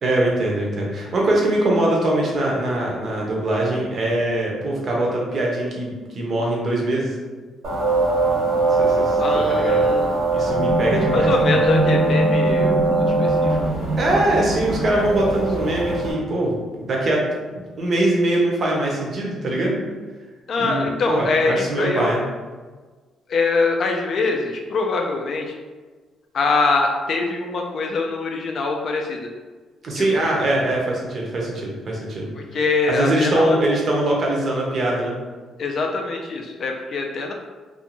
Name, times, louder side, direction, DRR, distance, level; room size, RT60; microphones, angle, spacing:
voice 1, 0.0-7.1 8.7-9.2 9.5-9.8 10.3-11.3 14.0-17.2 17.5-19.8 20.6-22.2 29.8-32.3 32.9-35.1, right 1 dB, 40° right, -2 dB, 0.6 m, -22 dB
sound 1, 7.6-16.1, right 2 dB, 65° right, 0.8 m, -20 dB
voice 2, 9.2-10.1 11.1-13.6 20.5-22.1 23.3-25.5 26.3-29.3 30.0-30.3 32.3-33.6 35.6-37.3, left 3 dB, 45° left, 2 dB, 0.3 m, -23 dB
2.5 x 2.2 x 2.9 m, 1.4 s
cardioid pair, 155°, 0 cm